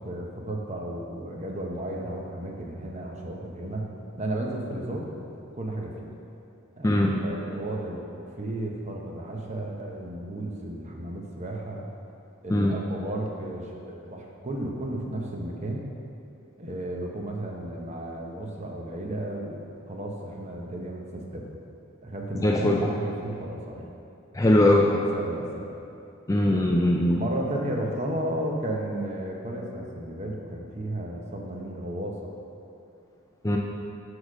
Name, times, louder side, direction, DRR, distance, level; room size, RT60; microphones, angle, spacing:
voice 1, 0.0-3.9 4.2-5.1 5.6-6.1 6.8-11.8 12.4-15.9 16.6-21.5 22.0-23.8 24.6-25.8 27.1-32.3, right 1 dB, 30° right, 0 dB, 0.8 m, -33 dB
voice 2, 6.8-7.2 12.5-12.8 22.4-22.9 24.3-25.0 26.3-27.2 33.4-33.6, left 1 dB, 15° left, 0 dB, 0.3 m, -21 dB
6.3 x 4.8 x 6.3 m, 2.8 s
head